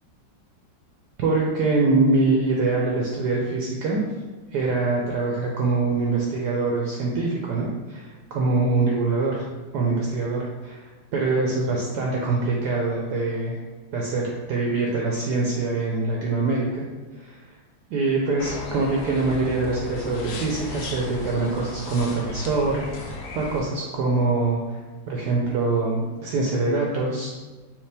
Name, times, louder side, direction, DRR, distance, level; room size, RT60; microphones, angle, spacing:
voice 1, 1.2-4.0 4.5-9.5 9.7-13.6 13.9-16.8 17.2-17.4 17.9-24.8 25.1-27.3, right 3 dB, 70° right, -2 dB, 1.0 m, -24 dB
sound 1, 18.4-23.6, left 2 dB, 80° left, 0.7 m, -36 dB
4.8 x 2.9 x 3.3 m, 1.3 s
omnidirectional pair, 2.0 m